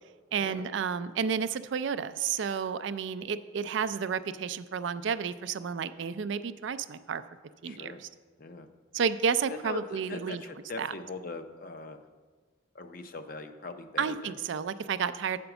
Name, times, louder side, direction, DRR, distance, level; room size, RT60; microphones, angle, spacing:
voice 1, 0.3-7.2 7.6-7.9 8.9-10.4 10.8-10.9 14.0-15.4, right 6 dB, 70° right, 13 dB, 0.4 m, -31 dB
voice 2, 7.6-8.0 8.4-8.7 9.5-12.0 12.7-14.4, left 3 dB, 45° left, 8 dB, 0.6 m, -41 dB
7.8 x 5.1 x 6.9 m, 1.5 s
head